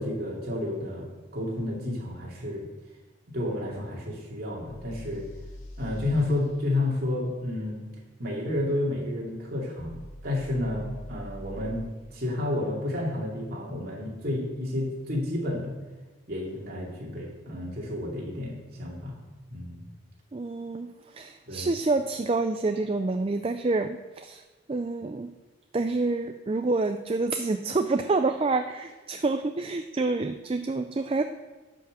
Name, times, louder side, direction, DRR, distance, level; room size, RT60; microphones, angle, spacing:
voice 1, 0.0-2.7 3.3-5.3 5.8-7.9 8.2-15.7 16.3-19.2 19.5-19.8 21.5-21.7, left 1 dB, 45° right, -2 dB, 2.6 m, -31 dB
sound 1, 4.7-6.3 9.8-11.9, equal, 90° left, 2.0 m, -42 dB
voice 2, 20.3-25.3 25.7-31.2, right 3 dB, 25° right, 7 dB, 0.4 m, -28 dB
11.5 x 5.7 x 7.5 m, 1.3 s
head